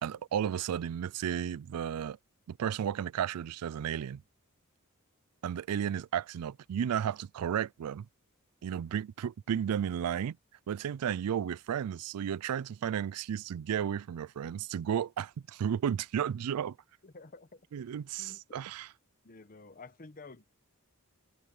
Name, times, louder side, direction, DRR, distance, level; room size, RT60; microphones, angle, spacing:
voice 1, 0.0-2.2 2.5-4.2 5.4-8.1 8.6-10.4 10.7-16.8 17.7-18.9, right 9 dB, 85° right, 0.4 m, -33 dB
voice 2, 17.0-17.6 18.2-18.4 19.2-20.5, left 3 dB, 40° left, 1.0 m, -51 dB
head